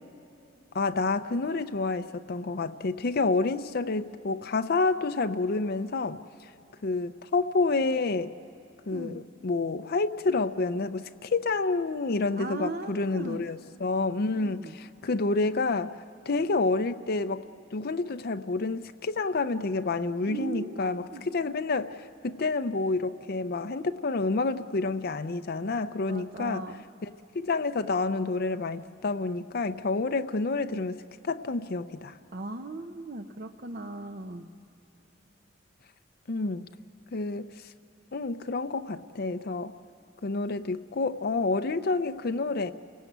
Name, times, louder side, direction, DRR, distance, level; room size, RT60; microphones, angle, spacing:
voice 1, 0.7-6.5 6.8-8.3 8.9-15.9 16.3-17.4 17.7-26.6 27.0-27.1 27.3-32.2 36.3-36.7 37.1-37.7 38.1-39.7 40.2-42.7, left 3 dB, 55° left, 9 dB, 0.6 m, -29 dB
voice 2, 8.9-9.2 12.3-13.4 14.3-14.8 20.3-21.3 26.1-26.8 32.3-34.5, right 2 dB, 50° right, 6 dB, 0.8 m, -38 dB
29.0 x 18.5 x 8.0 m, 2.9 s
head